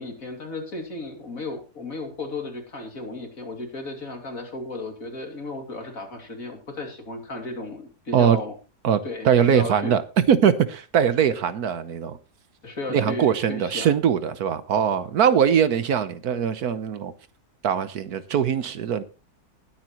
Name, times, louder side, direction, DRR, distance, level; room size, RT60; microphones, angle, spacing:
voice 1, 0.0-8.5 9.0-9.9 12.6-13.9, left 2 dB, 55° left, 3.0 m, -34 dB
voice 2, 9.2-10.0 10.3-12.2 12.9-17.1 17.6-19.0, right 8 dB, 70° right, 1.4 m, -21 dB
20.5 x 8.8 x 3.0 m
omnidirectional pair, 1.7 m